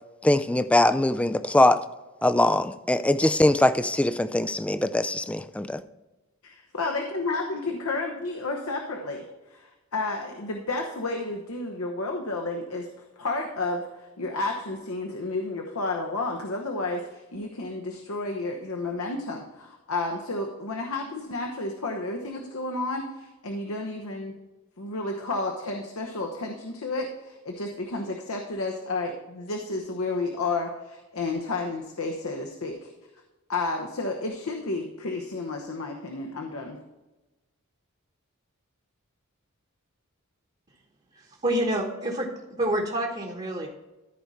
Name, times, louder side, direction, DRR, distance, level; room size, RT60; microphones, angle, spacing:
voice 1, 0.2-1.8 2.2-5.8, left 1 dB, 5° left, 12 dB, 0.3 m, -22 dB
voice 2, 6.4-12.9 13.2-24.3 24.8-32.9 33.5-36.8, left 2 dB, 75° left, 2 dB, 1.0 m, -31 dB
voice 3, 41.1-42.3 42.6-43.7, right 1 dB, 30° right, 0 dB, 1.2 m, -27 dB
14.0 x 4.8 x 4.1 m, 1.1 s
head